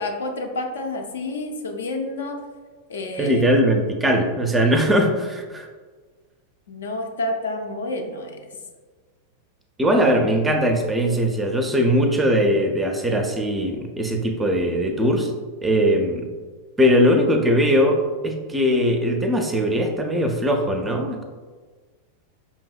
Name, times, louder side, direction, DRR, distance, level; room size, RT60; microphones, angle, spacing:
voice 1, 0.0-2.4 2.9-3.5 6.7-8.5 10.1-10.2, left 2 dB, 65° left, 3 dB, 0.4 m, -29 dB
voice 2, 3.2-5.7 9.8-15.3 15.6-16.3 16.8-21.2, equal, 10° right, 3 dB, 0.4 m, -20 dB
5.4 x 2.6 x 2.3 m, 1.4 s
figure-of-eight pair, 90°, 0 cm